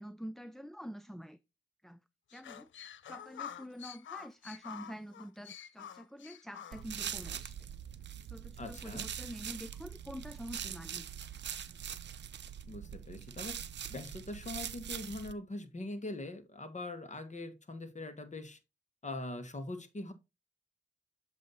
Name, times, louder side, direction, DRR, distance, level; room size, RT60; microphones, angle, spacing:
voice 1, 0.0-1.4 1.8-2.0 2.3-2.7 3.0-7.7 8.2-11.2, equal, ahead, 0.3 m, -47 dB
sound 1, 2.3-7.4, left 9 dB, 70° left, 0.5 m, -48 dB
sound 2, 6.7-15.3, right 9 dB, 60° right, 0.6 m, -43 dB
voice 2, 8.6-9.1 12.7-13.6 13.9-18.6 19.0-20.1, left 2 dB, 35° left, 1.4 m, -42 dB
7.6 x 2.8 x 5.2 m
cardioid pair, 55°, 20 cm